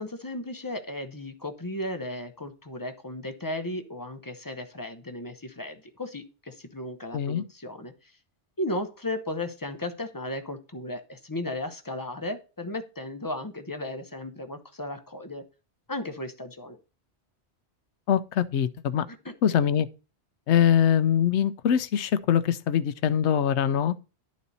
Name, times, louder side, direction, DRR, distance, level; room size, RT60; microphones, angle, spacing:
voice 1, 0.0-8.1 8.6-15.4 15.9-16.8 19.1-19.2 19.5-19.6, left 1 dB, 20° left, 0.8 m, -35 dB
voice 2, 7.1-7.4 18.1-19.1 19.4-19.9 20.5-24.0, left 9 dB, 85° left, 0.9 m, -23 dB
11.0 x 4.2 x 4.0 m
omnidirectional pair, 1.1 m